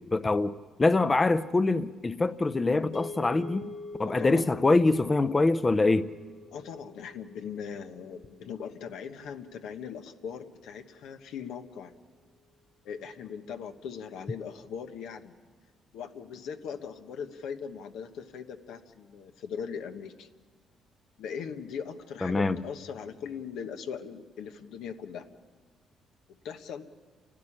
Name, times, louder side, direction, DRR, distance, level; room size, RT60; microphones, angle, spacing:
voice 1, 0.1-0.5 0.8-3.6 4.0-6.1 22.2-22.6, left 3 dB, 25° left, 0.6 m, -24 dB
sound 1, 2.9-11.2, left 3 dB, 60° left, 1.2 m, -47 dB
voice 2, 4.0-4.5 6.5-11.9 12.8-15.3 15.9-20.3 21.2-25.3 26.4-26.9, left 7 dB, 85° left, 1.2 m, -40 dB
29.0 x 12.0 x 9.9 m
cardioid pair, 90°, 0 cm